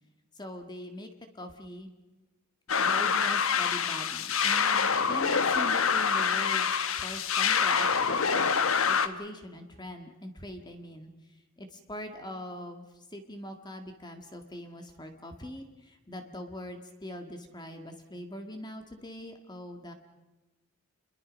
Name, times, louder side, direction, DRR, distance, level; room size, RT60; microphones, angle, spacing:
voice 1, 0.4-1.1 1.3-1.9 2.8-8.5 8.9-11.1 11.6-19.9, equal, 20° left, 6 dB, 1.8 m, -42 dB
sound 1, 2.7-9.1, left 6 dB, 75° left, 1.1 m, -26 dB
28.5 x 22.5 x 5.3 m, 1.1 s
head